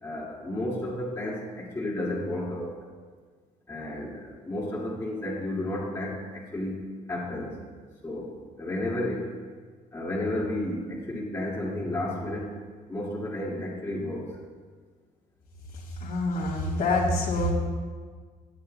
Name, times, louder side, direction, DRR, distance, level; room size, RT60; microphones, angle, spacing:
voice 1, 0.0-2.7 3.7-7.6 8.0-9.3 9.9-12.5 12.9-14.3, left 1 dB, 15° left, -5 dB, 2.0 m, -32 dB
voice 2, 16.0-17.5, left 2 dB, 75° left, -3 dB, 2.4 m, -26 dB
18.0 x 8.5 x 2.2 m, 1.6 s
cardioid pair, 135°, 16 cm